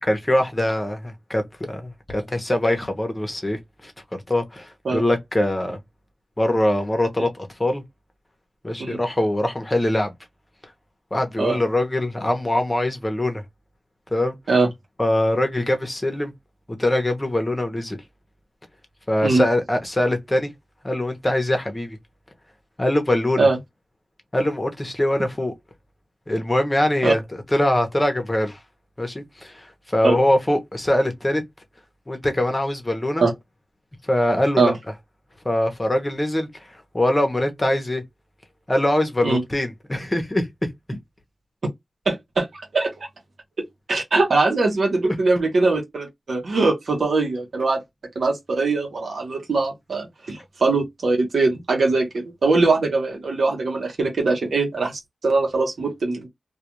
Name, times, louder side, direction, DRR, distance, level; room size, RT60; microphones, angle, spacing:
voice 1, 0.1-1.4 1.7-5.8 6.4-7.8 8.6-10.1 11.1-13.4 14.1-14.4 15.0-16.3 16.8-18.0 19.1-20.5 20.8-22.0 22.8-23.5 24.3-25.5 26.3-27.2 27.5-28.6 29.0-31.4 32.1-33.2 34.1-34.7 35.4-36.6 36.9-38.0 38.7-40.5 45.0-45.2, left 1 dB, 20° left, 0.8 m, -22 dB
voice 2, 42.1-42.9 43.9-47.8 48.1-56.3, right 3 dB, 80° right, 0.8 m, -21 dB
2.3 x 2.3 x 2.9 m
wide cardioid pair, 110°, 0 cm